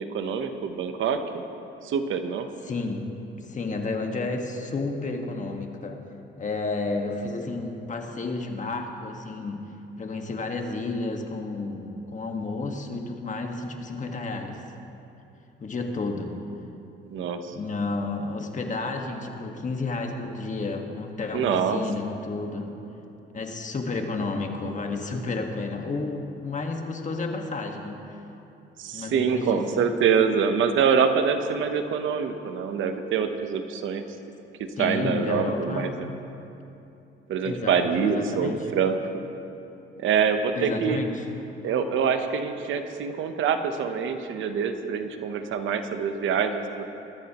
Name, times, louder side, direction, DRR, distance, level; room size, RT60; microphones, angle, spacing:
voice 1, 0.0-1.4 1.8-2.5 17.1-17.6 21.3-21.8 28.8-34.1 34.8-35.9 37.3-39.2 40.0-41.0 41.6-46.9, right 6 dB, 80° right, 7 dB, 1.0 m, -25 dB
voice 2, 2.6-3.1 3.4-6.0 6.4-9.6 10.0-14.6 15.6-16.3 17.5-22.7 23.3-28.0 28.9-29.9 34.8-36.0 37.4-38.7 40.5-41.3, left 3 dB, 40° left, 3 dB, 1.6 m, -31 dB
21.0 x 13.5 x 3.0 m, 2.9 s
cardioid pair, 90°, 20 cm